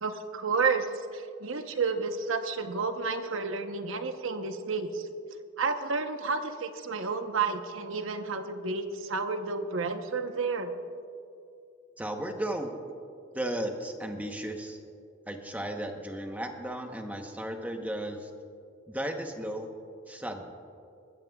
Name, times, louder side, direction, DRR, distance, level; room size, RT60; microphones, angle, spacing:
voice 1, 0.0-5.1 5.6-10.7, right 4 dB, 90° right, 7 dB, 0.9 m, -31 dB
voice 2, 12.0-12.7 13.3-14.8 15.3-18.3 18.9-19.7 20.1-20.5, right 1 dB, 10° right, 3 dB, 0.9 m, -35 dB
20.5 x 15.0 x 2.3 m, 2.6 s
head